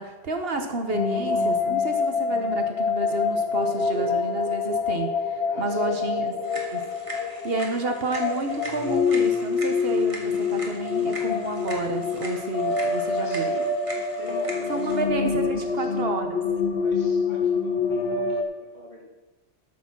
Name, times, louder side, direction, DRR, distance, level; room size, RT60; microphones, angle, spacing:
voice 1, 0.0-6.3 6.7-6.9 7.4-13.5 14.7-16.4, right 2 dB, 60° right, 5 dB, 1.2 m, -30 dB
sound 1, 0.9-18.4, left 5 dB, 60° left, 1.2 m, -26 dB
voice 2, 5.5-6.7 13.2-13.6 14.2-15.9 16.7-19.0, equal, 40° left, -4 dB, 3.5 m, -43 dB
sound 2, 6.4-15.0, right 1 dB, 30° right, 1.8 m, -41 dB
13.0 x 6.4 x 5.9 m, 1.1 s
omnidirectional pair, 1.2 m